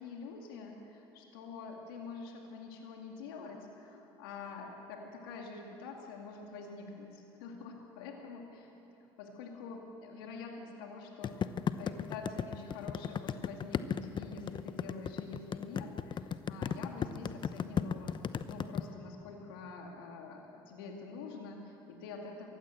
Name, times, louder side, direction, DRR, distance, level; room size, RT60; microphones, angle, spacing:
voice 1, 0.0-8.7 9.2-18.2 18.5-22.5, left 4 dB, 80° left, 1 dB, 2.3 m, -46 dB
sound 1, 11.2-18.8, left 8 dB, 40° left, 0.9 m, -34 dB
23.0 x 16.0 x 7.9 m, 2.9 s
hypercardioid pair, 70°, 12 cm